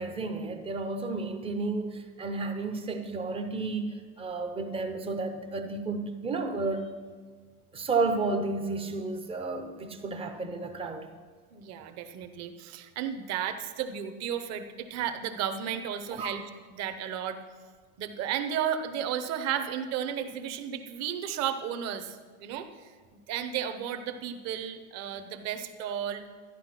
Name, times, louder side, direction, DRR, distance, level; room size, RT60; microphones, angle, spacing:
voice 1, 0.0-6.9 7.7-11.1 16.1-16.4, right 3 dB, 15° right, 6 dB, 0.6 m, -32 dB
voice 2, 11.5-16.4 16.7-17.4 18.0-22.9 23.3-26.2, right 9 dB, 35° right, 8 dB, 0.9 m, -33 dB
13.0 x 9.7 x 5.9 m, 1.5 s
supercardioid pair, 160°, 44 cm